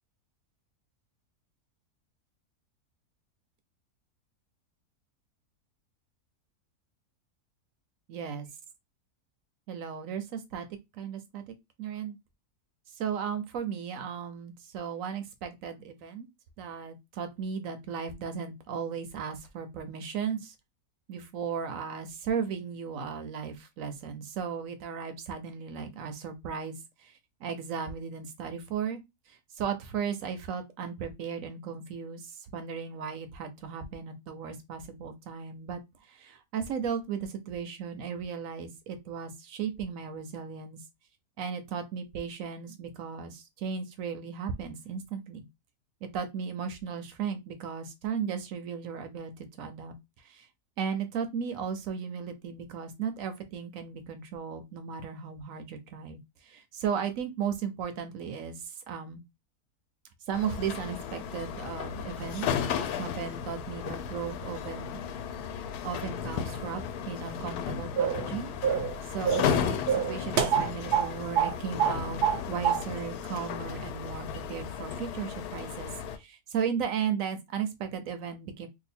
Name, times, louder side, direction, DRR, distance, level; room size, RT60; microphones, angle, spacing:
voice 1, 8.1-8.5 9.7-10.7 10.9-12.2 13.0-16.3 16.6-20.5 21.1-29.0 29.3-40.8 41.4-45.5 46.0-50.5 50.8-59.2 60.3-62.5 63.0-65.0 65.8-68.5 69.1-72.2 72.5-78.7, right 7 dB, 65° right, 0.9 m, -36 dB
sound 1, 60.3-76.2, left 7 dB, 80° left, 1.1 m, -34 dB
sound 2, 68.0-68.3 68.6-68.9 69.3-69.6 69.9-71.1 71.4-71.5 71.8-72.4 72.6-72.8, right 8 dB, 90° right, 1.2 m, -26 dB
2.8 x 2.4 x 4.2 m
omnidirectional pair, 1.7 m